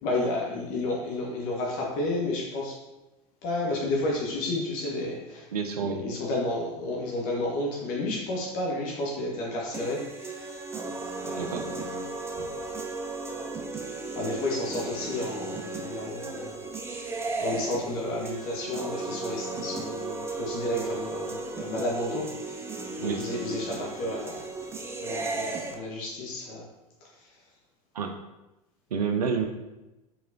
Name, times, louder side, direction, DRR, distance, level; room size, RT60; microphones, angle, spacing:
voice 1, 0.0-2.7 3.4-5.5 5.8-10.6 11.2-11.9 14.1-16.6 16.9-22.7 23.0-24.4 25.0-26.7 27.0-27.3, left 2 dB, 50° left, -3 dB, 1.0 m, -32 dB
voice 2, 5.5-6.0 11.4-11.7 23.0-23.2 27.9-28.1 28.9-29.4, right 6 dB, 80° right, 5 dB, 0.4 m, -28 dB
sound 1, 9.7-25.7, right 3 dB, 15° right, 0.5 m, -35 dB
4.6 x 3.7 x 2.7 m, 0.99 s
figure-of-eight pair, 80°, 20 cm